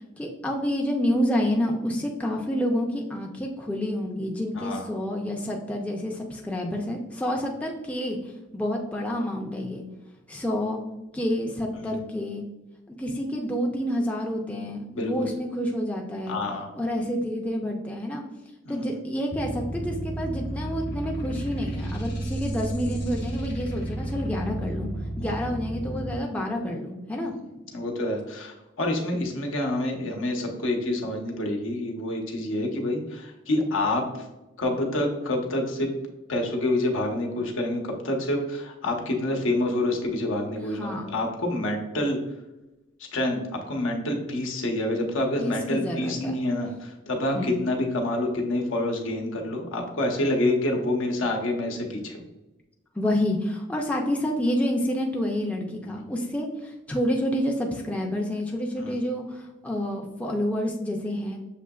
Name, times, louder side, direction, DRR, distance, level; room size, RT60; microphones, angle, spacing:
voice 1, 0.2-8.2 8.5-9.8 10.3-10.8 11.1-12.4 13.0-16.4 16.8-18.2 18.7-24.9 25.2-27.3 40.8-41.0 45.4-46.3 47.3-47.7 53.0-61.4, equal, 5° left, 0 dB, 0.4 m, -28 dB
voice 2, 4.5-4.9 11.8-12.0 14.9-15.3 16.3-16.7 18.6-18.9 25.2-25.3 27.7-34.3 34.6-36.0 36.3-42.2 43.1-52.2 55.8-56.1 58.8-59.0, left 1 dB, 80° left, 1 dB, 0.9 m, -27 dB
sound 1, 19.3-26.2, right 1 dB, 50° left, 1.0 m, -32 dB
6.7 x 2.8 x 2.3 m, 1.0 s
head